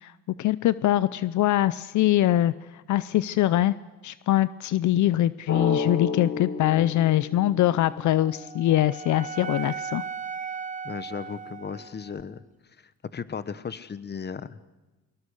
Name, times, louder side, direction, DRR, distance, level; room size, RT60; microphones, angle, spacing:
voice 1, 0.4-3.7 4.0-10.0, left 13 dB, 75° left, 17 dB, 0.7 m, -23 dB
Drum, 5.5-8.1, left 5 dB, 55° left, 5.1 m, -30 dB
Wind instrument woodwind instrument, 8.0-12.2, right 6 dB, 25° right, 0.8 m, -37 dB
voice 2, 10.8-12.4 12.8-14.6, left 6 dB, 35° left, 15 dB, 1.2 m, -36 dB
22.5 x 21.0 x 6.6 m, 1.1 s
cardioid pair, 90°, 30 cm